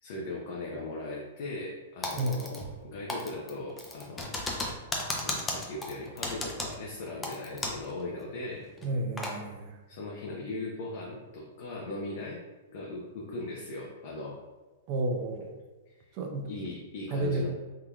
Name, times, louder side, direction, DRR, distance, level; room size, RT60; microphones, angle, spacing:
voice 1, 0.0-4.4 5.1-8.7 9.9-12.4 12.7-14.4 15.9-16.0 16.4-17.5, left 2 dB, 60° left, -2 dB, 0.6 m, -39 dB
Typing, 2.0-2.8 3.1-7.9 8.2-8.3 8.8-9.4, left 2 dB, 15° left, 0.6 m, -35 dB
voice 2, 8.8-9.8 14.9-15.5 16.2-16.5 17.1-17.5, right 2 dB, 45° right, 4 dB, 0.5 m, -31 dB
3.6 x 2.8 x 2.3 m, 1.2 s
hypercardioid pair, 125°, 0 cm